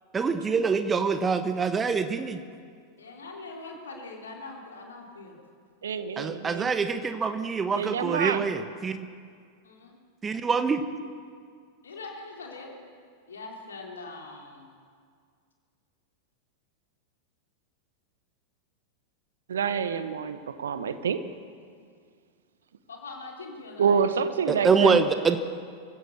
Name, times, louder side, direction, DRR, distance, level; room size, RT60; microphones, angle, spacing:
voice 1, 0.1-2.4 6.2-9.0 10.2-10.8 24.5-25.4, right 5 dB, 20° right, 10 dB, 1.1 m, -25 dB
voice 2, 3.0-5.4 9.6-10.0 11.8-12.8 13.3-14.7 22.9-24.1 24.5-25.4, left 3 dB, 70° left, 0 dB, 3.8 m, -42 dB
voice 3, 5.8-6.7 7.7-8.5 19.5-21.2 23.8-25.0, right 6 dB, 65° right, 11 dB, 1.1 m, -27 dB
24.0 x 16.0 x 6.9 m, 2.1 s
figure-of-eight pair, 90°, 0 cm